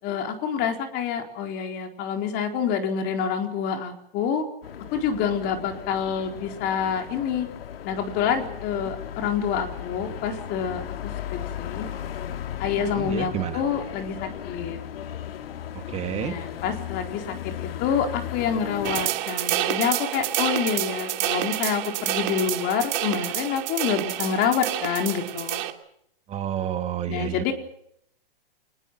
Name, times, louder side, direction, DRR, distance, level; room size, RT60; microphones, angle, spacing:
voice 1, 0.0-4.4 4.9-7.5 7.8-10.8 11.3-11.9 12.6-14.8 16.1-25.6 27.1-27.5, left 7 dB, 35° left, 4 dB, 4.3 m, -27 dB
sound 1, 4.6-19.1, left 10 dB, 75° left, 2.2 m, -36 dB
voice 2, 12.8-13.6 15.9-16.3 26.3-27.4, right 10 dB, 20° right, 6 dB, 2.1 m, -30 dB
sound 2, 18.8-25.7, right 14 dB, 50° right, 2.8 m, -28 dB
25.5 x 21.0 x 7.5 m, 0.72 s
hypercardioid pair, 145°, 30 cm